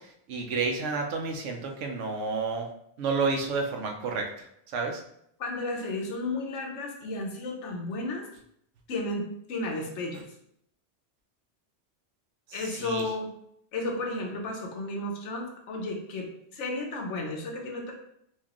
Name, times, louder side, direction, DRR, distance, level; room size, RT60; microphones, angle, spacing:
voice 1, 0.3-2.7 3.0-4.3 4.7-5.0 12.8-13.0, right 4 dB, 85° right, 3 dB, 1.0 m, -30 dB
voice 2, 5.4-8.3 8.9-10.3 12.5-13.3 13.7-17.9, left 2 dB, 80° left, 0 dB, 1.0 m, -33 dB
4.4 x 2.3 x 2.9 m, 0.73 s
omnidirectional pair, 1.2 m